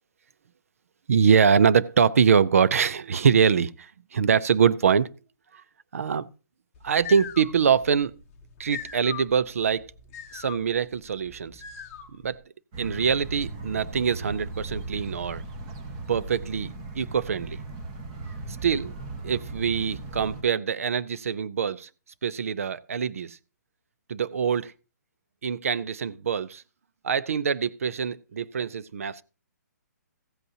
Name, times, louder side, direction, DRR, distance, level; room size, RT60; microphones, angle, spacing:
voice 1, 1.1-5.1 5.5-5.6 5.9-6.3 6.8-8.1 8.6-9.9 10.3-11.6 12.1-12.4 12.8-15.4 16.1-17.6 18.6-18.9 19.2-21.9 22.2-23.4 24.1-24.7 25.4-26.6 27.0-29.2, right 6 dB, 50° right, 0.5 m, -24 dB
sound 1, 6.8-12.4, left 8 dB, 15° left, 1.0 m, -41 dB
sound 2, 12.7-20.4, right 3 dB, 20° right, 1.1 m, -37 dB
15.5 x 8.2 x 2.8 m
hypercardioid pair, 175°, 10 cm